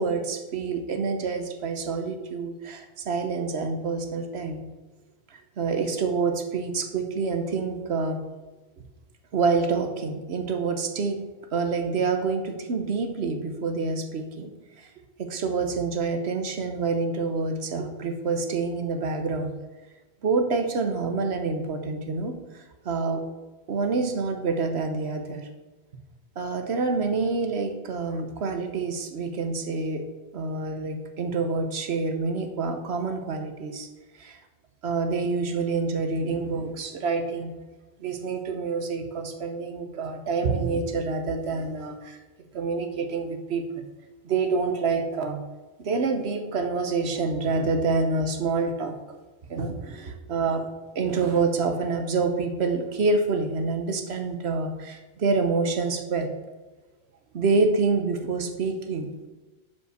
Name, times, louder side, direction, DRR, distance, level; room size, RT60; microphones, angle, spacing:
voice 1, 0.0-4.6 5.3-8.2 9.3-11.2 11.5-14.5 14.8-14.9 15.2-19.5 20.2-23.2 23.7-25.5 26.4-30.0 30.3-33.9 34.2-34.4 34.8-37.5 38.0-42.2 42.5-43.8 44.2-45.4 45.8-49.0 49.5-50.7 50.9-56.3 57.3-59.1, right 4 dB, 75° right, 6 dB, 1.2 m, -27 dB
7.1 x 5.4 x 6.5 m, 1.2 s
omnidirectional pair, 1.1 m